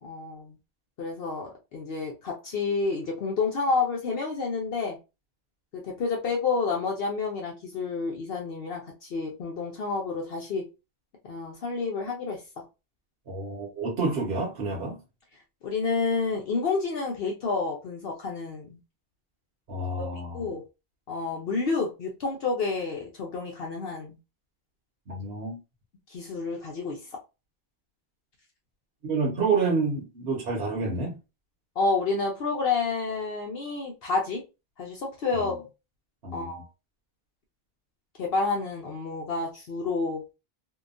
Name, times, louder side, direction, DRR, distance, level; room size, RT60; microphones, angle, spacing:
voice 1, 0.0-0.5 1.0-5.0 5.7-10.6 11.3-12.4 15.6-18.8 20.0-20.1 20.3-20.6 21.1-24.2 26.1-27.0 31.8-34.4 34.8-35.7 36.3-36.7 38.2-40.2, left 4 dB, 70° left, 0.9 m, -29 dB
voice 2, 13.3-15.0 19.7-20.5 25.1-25.6 29.0-31.2 35.3-35.5 36.2-36.5, right 4 dB, 70° right, 1.1 m, -29 dB
2.8 x 2.2 x 2.4 m
omnidirectional pair, 1.1 m